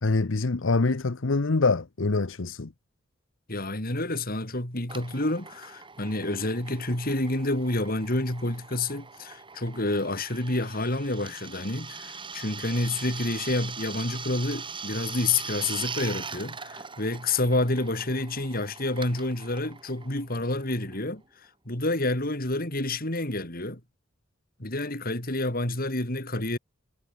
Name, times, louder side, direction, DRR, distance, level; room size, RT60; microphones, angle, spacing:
voice 1, 0.0-2.7, left 3 dB, 75° left, 0.9 m, -25 dB
voice 2, 3.5-21.2 21.6-23.8 24.6-26.6, left 2 dB, 50° left, 5.0 m, -29 dB
Drill, 4.9-21.2, right 5 dB, 25° right, 3.1 m, -41 dB
head